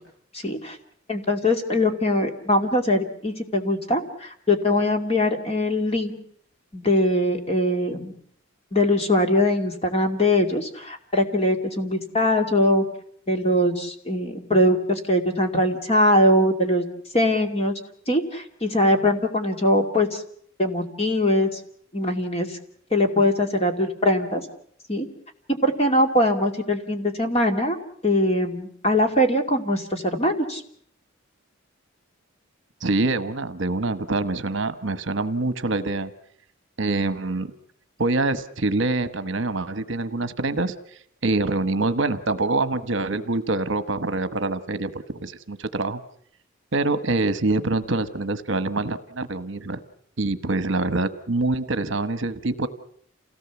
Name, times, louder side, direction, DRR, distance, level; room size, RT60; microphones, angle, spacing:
voice 1, 0.3-0.8 1.1-6.2 6.7-8.1 8.7-12.8 13.3-16.9 17.1-17.8 18.1-20.2 20.6-21.6 21.9-22.6 22.9-24.4 24.9-25.1 25.5-27.8 28.0-30.6, left 1 dB, 30° left, 5 dB, 2.4 m, -22 dB
voice 2, 32.8-36.1 36.8-37.5 38.0-40.7 41.2-46.0 46.7-49.8 50.2-52.7, right 2 dB, 60° right, 12 dB, 1.2 m, -25 dB
28.5 x 17.5 x 7.1 m, 0.63 s
head